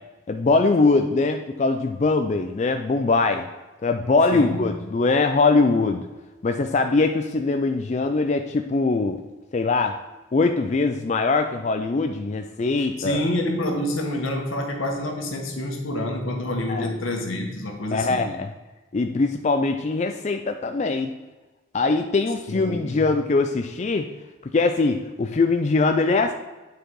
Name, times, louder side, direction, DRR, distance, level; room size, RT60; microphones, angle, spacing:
voice 1, 0.3-3.5 3.8-6.0 6.4-9.2 9.5-10.0 10.3-13.2 16.7-16.9 17.9-18.5 18.9-21.1 21.7-24.1 24.5-26.3, left 3 dB, 35° left, 5 dB, 0.3 m, -22 dB
voice 2, 4.3-4.7 13.0-18.3 22.5-23.0, left 1 dB, 80° left, 2 dB, 1.4 m, -27 dB
8.9 x 4.7 x 4.7 m, 1.1 s
head